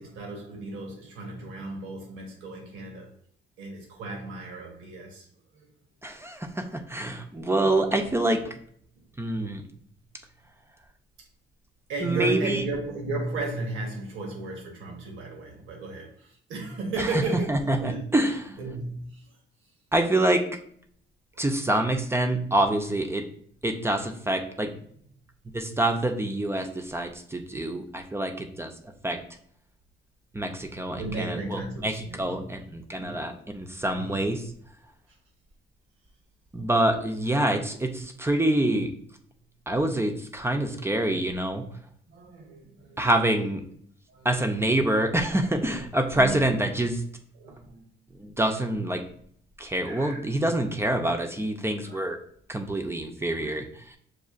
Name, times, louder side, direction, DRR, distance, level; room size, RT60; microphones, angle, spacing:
voice 1, 0.0-3.1 3.6-5.2 5.5-5.7 7.4-8.0 11.9-18.0 18.6-19.3 21.4-21.5 30.9-32.5 33.0-33.2 34.0-34.2 42.1-43.0 44.1-44.3 46.1-46.5 47.3-47.8 49.8-50.2 51.8-52.1 53.4-53.7, right 2 dB, 85° right, 1 dB, 1.1 m, -35 dB
voice 2, 6.0-8.5 9.2-9.6 12.0-12.6 17.0-17.2 17.5-18.5 19.9-20.4 21.4-23.2 23.6-24.7 25.5-28.7 29.0-29.2 30.3-34.4 36.5-38.9 39.7-41.6 43.0-43.6 44.2-47.0 48.2-49.0 49.6-52.2 52.5-54.0, right 1 dB, 10° right, 4 dB, 0.5 m, -26 dB
6.3 x 2.4 x 2.4 m, 0.62 s
cardioid pair, 90°, 20 cm